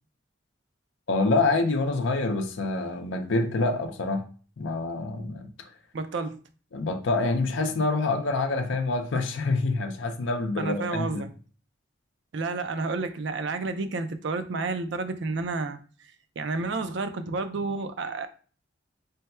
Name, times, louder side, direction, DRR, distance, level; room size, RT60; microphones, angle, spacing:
voice 1, 1.1-4.2 4.6-5.5 6.7-11.3, left 3 dB, 75° left, 0.5 m, -26 dB
voice 2, 5.9-6.4 10.6-11.3 12.3-15.8 16.4-18.3, right 3 dB, 65° right, 0.5 m, -30 dB
3.3 x 2.2 x 4.2 m
head